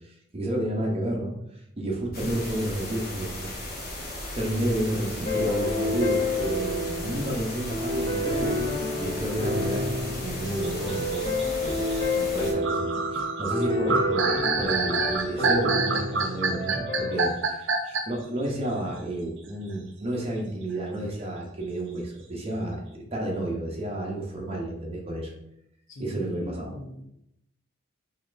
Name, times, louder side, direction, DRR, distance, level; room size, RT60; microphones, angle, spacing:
voice 1, 0.0-3.5 4.3-11.9 12.3-14.3 14.6-25.3 26.0-26.7, right 1 dB, 30° right, -1 dB, 0.7 m, -31 dB
sound 1, 2.1-12.5, left 1 dB, 50° left, 1.0 m, -36 dB
sound 2, 5.3-17.3, left 2 dB, 25° left, 0.6 m, -29 dB
sound 3, 10.4-18.2, right 4 dB, 75° right, 0.5 m, -27 dB
voice 2, 12.0-13.2 13.9-14.7 16.7-16.9 25.9-27.0, left 1 dB, 75° left, 1 dB, 0.8 m, -40 dB
4.0 x 3.1 x 2.5 m, 0.77 s
head